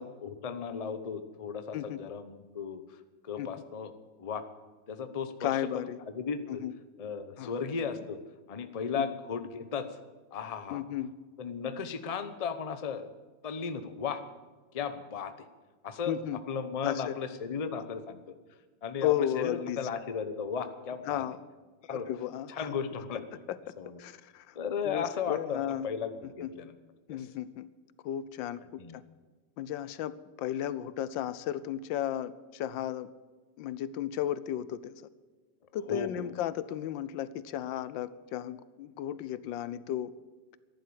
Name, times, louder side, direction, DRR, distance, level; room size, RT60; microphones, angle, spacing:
voice 1, 0.0-3.9 4.2-4.5 4.9-6.6 7.0-8.2 8.5-10.0 10.3-10.8 11.4-13.1 13.4-14.2 14.7-15.5 15.8-18.3 18.8-21.3 21.8-22.1 22.5-23.5 23.8-24.0 24.5-26.8 27.1-27.3 28.8-29.0 35.8-36.3, left 6 dB, 30° left, 10 dB, 0.6 m, -36 dB
voice 2, 5.4-6.0 6.5-6.7 7.4-7.5 10.7-11.1 16.1-16.4 16.8-17.2 19.0-19.8 21.1-21.4 22.1-22.8 23.5-23.6 24.0-24.6 24.8-25.9 26.4-26.5 27.1-27.7 28.0-28.6 28.9-29.0 29.6-33.1 33.6-35.0 35.7-40.1, left 11 dB, 85° left, 17 dB, 1.4 m, -34 dB
14.0 x 11.0 x 8.7 m, 1.4 s
omnidirectional pair, 2.0 m